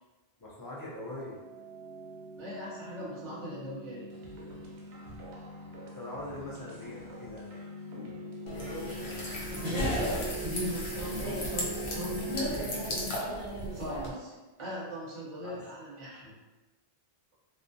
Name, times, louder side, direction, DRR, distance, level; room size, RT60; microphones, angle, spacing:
voice 1, 0.4-1.4 5.9-7.5 9.8-10.3 15.4-15.6, left 1 dB, 25° left, -6 dB, 0.5 m, -42 dB
sound 1, 1.0-13.7, right 1 dB, ahead, 0.9 m, -43 dB
voice 2, 2.4-4.1 9.6-13.4 13.7-16.4, left 1 dB, 35° right, -6 dB, 0.6 m, -40 dB
sound 2, 4.1-11.6, right 1 dB, 90° right, 0.8 m, -51 dB
sound 3, 8.5-14.1, equal, 80° left, 0.9 m, -34 dB
2.3 x 2.1 x 2.6 m, 1.2 s
omnidirectional pair, 1.1 m